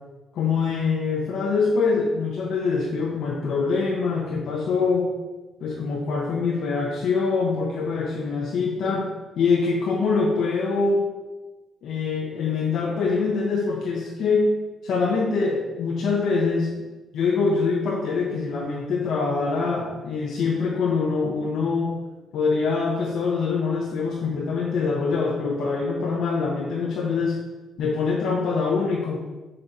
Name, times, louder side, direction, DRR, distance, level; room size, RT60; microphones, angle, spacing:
voice 1, 0.3-5.1 5.6-9.1 9.4-11.1 11.8-14.5 14.8-16.7 17.1-22.0 22.3-27.4 27.8-29.2, left 4 dB, 75° left, -2 dB, 0.6 m, -24 dB
3.9 x 3.3 x 3.9 m, 1.1 s
cardioid pair, 90°, 0 cm